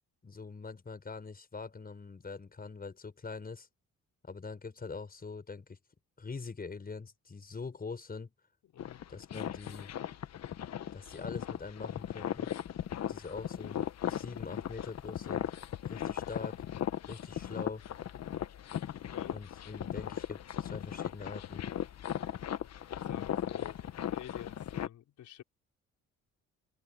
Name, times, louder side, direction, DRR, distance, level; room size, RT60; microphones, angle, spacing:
voice 1, 0.2-3.7 4.2-5.8 6.2-8.3 9.1-9.9 10.9-12.5 13.1-13.8 14.1-15.5 15.8-16.6 17.1-17.8 19.3-21.6, left 4 dB, 30° left, 5.8 m, -43 dB
voice 2, 8.6-9.0 18.8-19.4 22.9-23.8 24.1-25.4, left 11 dB, 75° left, 4.3 m, -50 dB
sound 1, 8.8-24.9, left 10 dB, 60° left, 1.2 m, -38 dB
cardioid pair, 90°, 30 cm